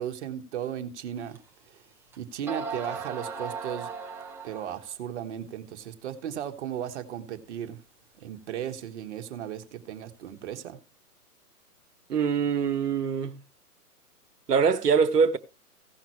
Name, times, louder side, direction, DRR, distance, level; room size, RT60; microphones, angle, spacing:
voice 1, 0.0-1.4 2.2-3.9 4.4-7.8 8.2-10.8, right 10 dB, 45° right, 1.6 m, -36 dB
sound 1, 1.4-1.5 2.1-2.2 2.5-4.9, right 4 dB, 5° right, 0.7 m, -37 dB
voice 2, 12.1-13.4 14.5-15.4, right 6 dB, 85° right, 1.3 m, -23 dB
16.5 x 5.9 x 3.1 m
hypercardioid pair, 140°, 46 cm